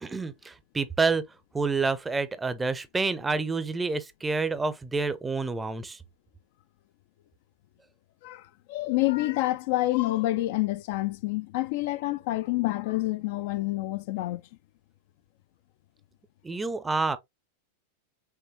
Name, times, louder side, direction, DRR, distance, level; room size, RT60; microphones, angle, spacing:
voice 1, 0.0-1.2 1.5-6.0 16.4-17.2, right 4 dB, 10° right, 0.6 m, -28 dB
voice 2, 8.2-14.4, left 18 dB, 50° left, 0.4 m, -28 dB
5.7 x 3.3 x 2.7 m
figure-of-eight pair, 90°, 0 cm